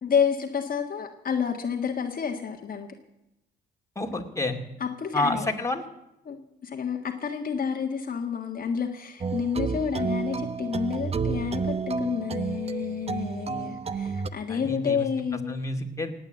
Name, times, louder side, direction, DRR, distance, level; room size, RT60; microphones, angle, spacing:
voice 1, 0.0-2.9 4.8-5.5 6.2-15.6, left 7 dB, 45° left, 3 dB, 1.6 m, -29 dB
voice 2, 4.0-4.6 5.1-5.8 14.5-15.1 15.5-16.1, left 2 dB, 15° left, 3 dB, 2.4 m, -29 dB
sound 1, 9.2-14.3, right 5 dB, 30° right, 0.8 m, -30 dB
18.0 x 9.0 x 7.8 m, 0.90 s
cardioid pair, 90°, 20 cm